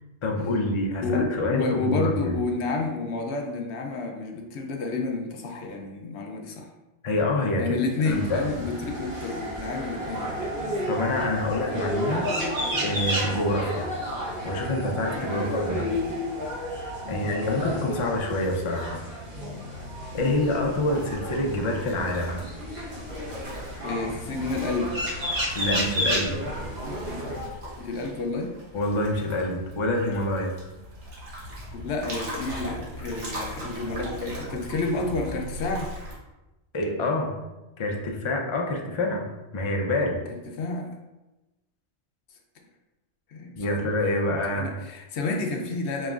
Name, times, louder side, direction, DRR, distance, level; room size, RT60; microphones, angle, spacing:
voice 1, 0.2-2.3 7.0-8.4 10.9-12.3 12.8-13.9 14.4-15.9 17.1-19.0 20.1-22.4 25.5-26.3 28.7-30.6 36.7-37.4 37.8-40.2 43.6-44.7, left 1 dB, 45° left, 1 dB, 0.4 m, -27 dB
voice 2, 1.0-6.7 7.6-10.4 15.1-16.1 17.0-17.6 20.2-20.4 23.8-25.1 27.8-28.6 31.7-35.9 40.6-40.9 43.3-43.9 44.5-46.1, left 3 dB, 75° left, 3 dB, 0.9 m, -30 dB
sound 1, 7.7-18.2, right 2 dB, 60° right, 1.4 m, -38 dB
sound 2, 8.1-27.5, equal, 40° right, 1.1 m, -32 dB
sound 3, 20.2-36.1, equal, 80° right, 1.4 m, -39 dB
5.1 x 3.0 x 2.4 m, 1.0 s
omnidirectional pair, 1.2 m